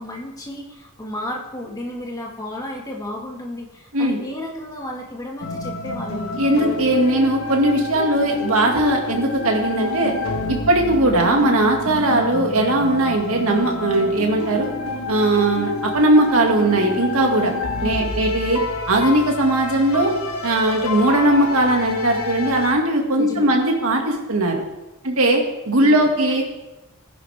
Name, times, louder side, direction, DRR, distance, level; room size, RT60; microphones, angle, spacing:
voice 1, 0.0-6.3 17.8-18.2 23.2-23.5 25.8-26.4, left 1 dB, 15° left, -1 dB, 1.9 m, -33 dB
sound 1, 5.4-22.7, left 2 dB, 65° left, 1.4 m, -28 dB
voice 2, 6.4-10.1 10.5-14.7 15.1-17.5 17.8-18.6 18.9-20.1 20.4-24.6 25.0-26.4, right 1 dB, 65° right, 1 dB, 2.2 m, -19 dB
17.5 x 10.5 x 3.6 m, 1.0 s
head